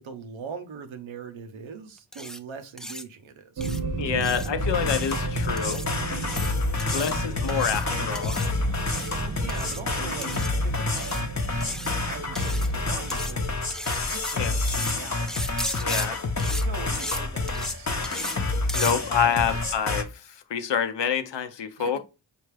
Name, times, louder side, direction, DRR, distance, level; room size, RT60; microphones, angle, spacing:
voice 1, 0.0-3.7 6.9-7.2 9.2-11.2 11.6-11.8 12.1-13.5 14.0-15.5 16.4-18.1 19.2-19.6 21.8-22.0, right 6 dB, 90° right, 0.7 m, -41 dB
sound 1, 2.1-2.4 2.8-3.0 3.6-3.8 4.2-4.5 4.9-5.2 5.6-5.9 6.2-6.5 6.8-7.1 7.5-7.8 8.1-8.5 8.8-9.1 9.5-9.8 10.2-10.5 11.0-11.2 11.6-11.9 12.3-12.7 13.1-13.3 13.7-14.3 14.7-14.9 15.3-16.1 16.4-16.6 16.9-17.2 17.5-17.7 18.0-18.4 18.7-18.9, equal, ahead, 0.3 m, -35 dB
sound 2, 3.6-13.6, right 4 dB, 45° right, 0.7 m, -34 dB
voice 2, 4.0-5.8 6.9-8.6 14.4-14.5 15.8-16.2 18.7-22.0, left 7 dB, 65° left, 0.7 m, -27 dB
sound 3, 4.6-20.0, left 3 dB, 40° left, 0.8 m, -28 dB
5.0 x 2.4 x 3.1 m
cardioid pair, 45°, 46 cm